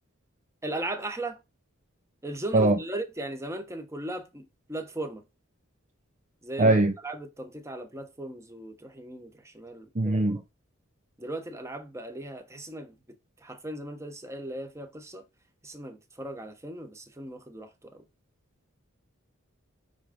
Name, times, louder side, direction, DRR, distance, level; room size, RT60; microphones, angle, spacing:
voice 1, 0.6-1.4 2.2-5.2 6.4-10.3 11.2-13.0 13.4-15.2 15.6-18.0, right 1 dB, 15° right, 1.1 m, -37 dB
voice 2, 6.6-6.9 10.0-10.4, right 2 dB, 35° right, 0.5 m, -21 dB
8.9 x 3.4 x 5.2 m
head